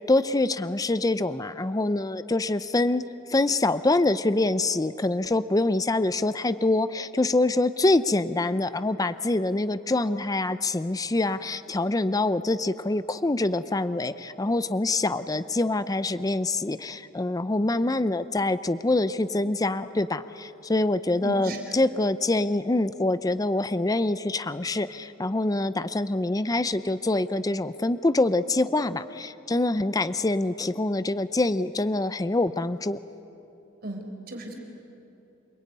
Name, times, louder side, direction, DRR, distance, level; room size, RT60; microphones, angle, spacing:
voice 1, 0.1-33.0, left 2 dB, 20° left, 13 dB, 0.5 m, -25 dB
voice 2, 21.2-21.8 33.8-34.5, right 1 dB, 50° right, 3 dB, 4.3 m, -35 dB
28.0 x 21.0 x 9.5 m, 2.9 s
head